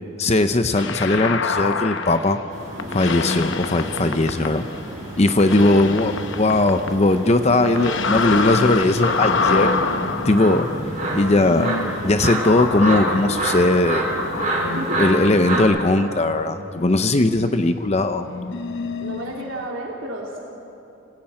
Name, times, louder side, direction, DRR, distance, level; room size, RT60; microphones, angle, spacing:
voice 1, 0.2-2.4 2.9-4.7 5.2-9.7 10.2-10.7 11.1-11.8 12.0-14.1 15.0-18.3, left 2 dB, 30° left, 8 dB, 0.7 m, -19 dB
sound 1, 0.8-2.5 2.8-5.0 5.3-7.3 7.7-19.7, left 4 dB, 60° left, 1.0 m, -27 dB
sound 2, 2.5-15.6, right 1 dB, 40° right, 5.2 m, -29 dB
voice 2, 5.5-5.9 8.4-9.0 14.6-15.0 15.5-15.7 19.0-20.4, right 1 dB, 70° right, -3 dB, 2.9 m, -32 dB
26.5 x 18.5 x 8.9 m, 2.9 s
head